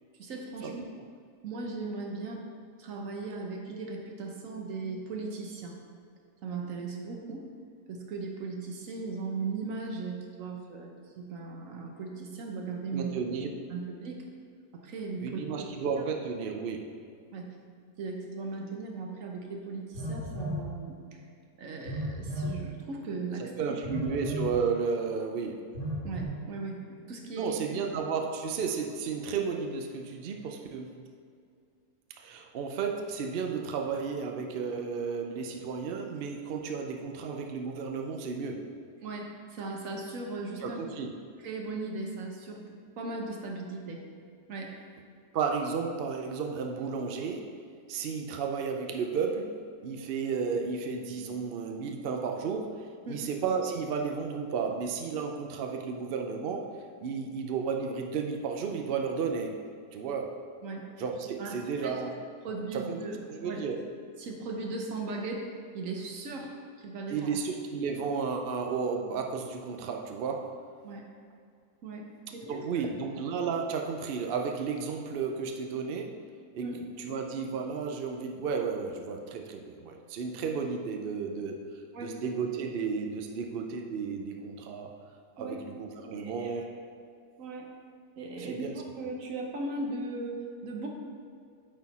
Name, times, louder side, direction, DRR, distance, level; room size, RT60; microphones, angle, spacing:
voice 1, 0.2-0.8 1.4-2.5 2.8-5.8 6.4-7.5 7.9-13.1 13.7-14.3 14.7-15.7 17.3-17.6 18.0-21.2 21.6-23.5 26.0-27.8 39.0-40.8 41.4-44.0 44.5-44.8 53.1-53.3 60.6-60.9 61.4-62.0 62.4-63.6 64.2-67.3 70.8-71.0 71.8-72.6 76.6-76.8 81.9-82.2 85.4-85.6 86.1-86.6 87.4-87.7 88.2-90.9, right 3 dB, 55° right, 1 dB, 1.2 m, -38 dB
voice 2, 12.9-13.5 15.2-16.9 23.6-25.7 27.4-31.0 32.2-38.7 40.6-41.1 45.3-47.5 47.9-49.5 49.8-56.7 57.0-59.6 59.9-60.3 61.0-62.1 62.7-63.0 63.3-63.8 67.1-70.5 72.5-76.2 76.5-76.7 77.0-81.6 82.0-84.9 85.4-86.7 88.4-88.7, right 5 dB, 85° right, 3 dB, 0.5 m, -33 dB
Telephone, 19.9-20.7 21.9-22.6 23.8-24.5 25.7-26.2, equal, 75° left, 1.7 m, -34 dB
8.8 x 4.2 x 4.2 m, 2.3 s
omnidirectional pair, 1.8 m